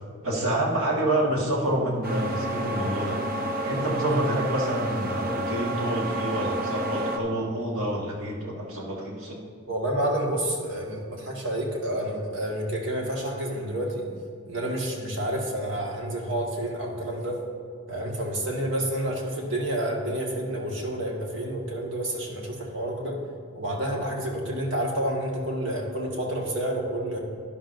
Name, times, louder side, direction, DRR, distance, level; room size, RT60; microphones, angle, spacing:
voice 1, 0.2-3.2 3.6-9.4, right 1 dB, 80° right, -2 dB, 1.7 m, -27 dB
sound 1, 2.0-7.2, right 1 dB, 45° right, 0.7 m, -30 dB
voice 2, 9.7-14.1 14.5-17.4 17.9-23.2 23.6-27.2, right 1 dB, 60° right, -1 dB, 1.7 m, -29 dB
11.5 x 11.0 x 2.6 m, 2.1 s
head